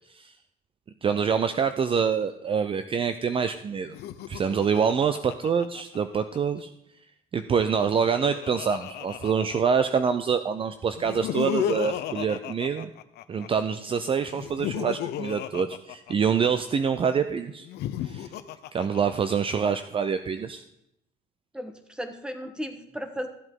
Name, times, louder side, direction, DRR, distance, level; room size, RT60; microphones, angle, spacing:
voice 1, 1.0-3.9 4.3-6.7 7.3-12.9 13.3-17.7 18.0-18.3 18.7-20.6, right 6 dB, 30° right, 10 dB, 0.5 m, -26 dB
Laughter, 3.9-6.4 7.7-10.1 11.0-13.5 14.3-16.7 17.6-19.5, left 12 dB, 75° left, 0.7 m, -34 dB
voice 2, 21.5-23.3, equal, 5° right, 7 dB, 1.3 m, -35 dB
14.5 x 7.9 x 3.8 m, 0.81 s
cardioid pair, 110°, 17 cm